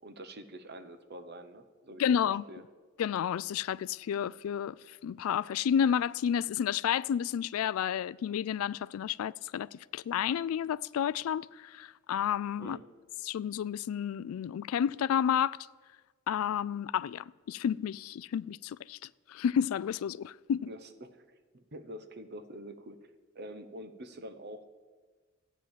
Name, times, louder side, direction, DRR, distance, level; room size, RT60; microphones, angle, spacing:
voice 1, 0.0-2.6 12.6-12.8 20.7-21.2 21.5-24.7, right 1 dB, 50° right, 0.9 m, -46 dB
voice 2, 2.0-2.4 3.0-12.8 13.2-15.7 16.3-19.0 19.3-20.7, left 8 dB, 85° left, 0.3 m, -31 dB
13.5 x 9.1 x 7.3 m
head